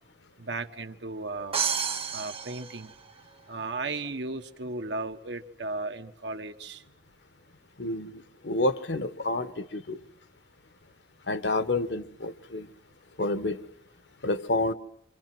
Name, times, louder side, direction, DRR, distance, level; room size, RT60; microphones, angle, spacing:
voice 1, 0.4-1.7 2.1-2.9 3.5-6.8, right 3 dB, 80° right, 1.4 m, -35 dB
sound 1, 1.5-3.5, right 7 dB, 35° right, 0.9 m, -31 dB
voice 2, 7.8-10.0 11.3-12.7 13.2-13.6 14.2-14.7, left 2 dB, 75° left, 1.2 m, -29 dB
28.0 x 26.5 x 6.1 m
head